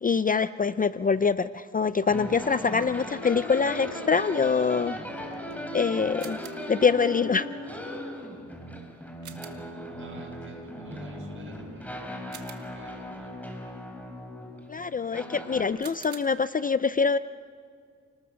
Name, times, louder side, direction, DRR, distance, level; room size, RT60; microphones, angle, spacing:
voice 1, 0.0-5.0 5.7-6.4 6.7-7.5 14.7-17.2, left 5 dB, 30° left, 14 dB, 0.5 m, -24 dB
sound 1, 2.1-15.7, equal, 5° left, 4.2 m, -38 dB
sound 2, 6.2-6.8 9.2-9.8 12.3-13.0 15.8-16.2, right 8 dB, 80° right, 1.8 m, -46 dB
voice 2, 10.0-13.3 14.2-14.3, right 3 dB, 45° right, 3 dB, 6.0 m, -52 dB
29.5 x 20.0 x 6.4 m, 2.2 s
cardioid pair, 90°, 29 cm